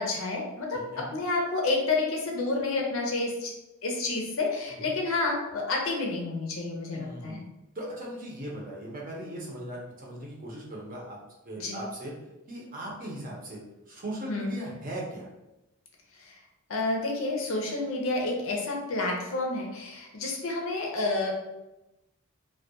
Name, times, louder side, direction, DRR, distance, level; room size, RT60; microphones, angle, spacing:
voice 1, 0.0-3.5 3.8-7.4 11.6-11.8 14.3-14.5 16.2-16.4 16.7-21.3, left 3 dB, 65° left, 0 dB, 0.6 m, -29 dB
voice 2, 0.7-1.0 6.9-7.4 7.7-11.2 11.4-12.1 12.5-13.6 13.9-15.3, right 1 dB, 40° right, -4 dB, 0.7 m, -38 dB
2.3 x 2.2 x 2.7 m, 0.96 s
head